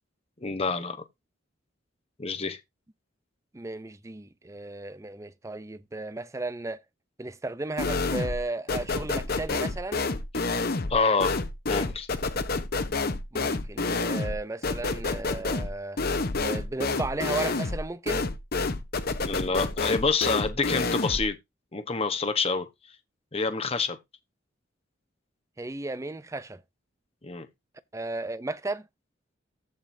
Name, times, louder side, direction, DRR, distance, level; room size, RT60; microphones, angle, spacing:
voice 1, 0.4-1.0 2.2-2.6 10.9-11.4 11.7-12.1 19.2-21.3 21.7-22.7 23.3-24.0 27.2-27.5, left 4 dB, 30° left, 1.0 m, -27 dB
voice 2, 3.5-6.8 7.2-10.0 13.3-16.0 16.4-18.3 25.6-26.6 27.9-28.9, right 2 dB, 15° right, 0.5 m, -34 dB
sound 1, 7.8-8.4 8.7-21.3, left 3 dB, 50° left, 1.0 m, -29 dB
14.5 x 5.1 x 2.7 m
head